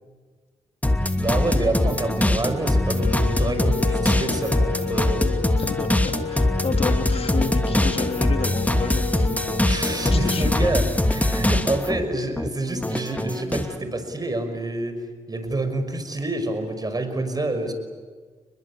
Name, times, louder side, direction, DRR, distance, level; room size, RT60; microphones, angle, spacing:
sound 1, 0.8-12.0 12.4-13.7, left 1 dB, 10° left, 2.6 m, -22 dB
voice 1, 1.2-5.3 9.7-17.7, right 2 dB, 30° right, 8 dB, 5.7 m, -27 dB
sound 2, 2.9-11.1, left 8 dB, 85° left, 1.2 m, -34 dB
voice 2, 5.6-9.4 9.9-10.7, left 4 dB, 50° left, 7 dB, 2.4 m, -30 dB
30.0 x 21.5 x 8.7 m, 1.5 s
cardioid pair, 70°, 13 cm